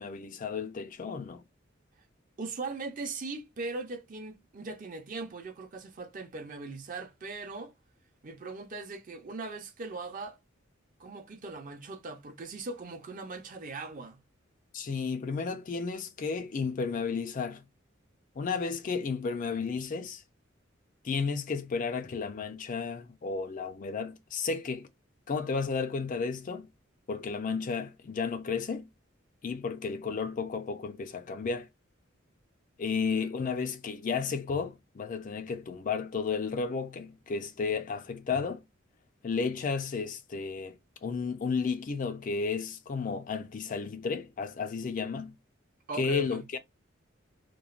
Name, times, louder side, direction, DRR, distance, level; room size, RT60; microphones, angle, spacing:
voice 1, 0.0-1.4 14.7-17.6 18.4-20.2 21.0-24.9 25.3-26.7 27.1-28.9 29.4-31.7 32.8-38.6 39.2-45.3 46.0-46.6, left 5 dB, 40° left, 0.4 m, -33 dB
voice 2, 2.4-7.7 8.2-10.4 11.0-14.2 33.1-33.7 45.9-46.4, right 3 dB, 45° right, 0.6 m, -40 dB
3.0 x 2.2 x 2.4 m
head